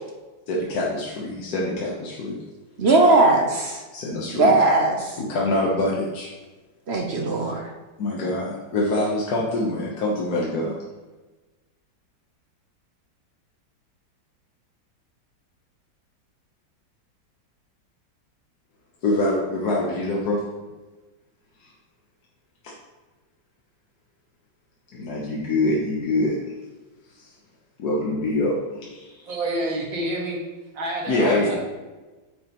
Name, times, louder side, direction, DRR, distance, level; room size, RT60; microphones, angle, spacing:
voice 1, 0.5-2.4 3.9-4.6 5.2-6.3 8.0-10.8 19.0-20.4 21.6-21.7 22.6-22.7 24.9-26.4 27.2-27.3 27.8-29.3 31.1-31.6, left 2 dB, 60° left, -4 dB, 1.5 m, -25 dB
voice 2, 2.8-3.8 4.4-5.1 6.9-7.6, right 2 dB, 55° right, 1 dB, 0.7 m, -18 dB
voice 3, 29.3-30.4 30.7-31.6, right 1 dB, 80° right, -3 dB, 2.4 m, -28 dB
9.1 x 6.5 x 3.0 m, 1.2 s
omnidirectional pair, 2.0 m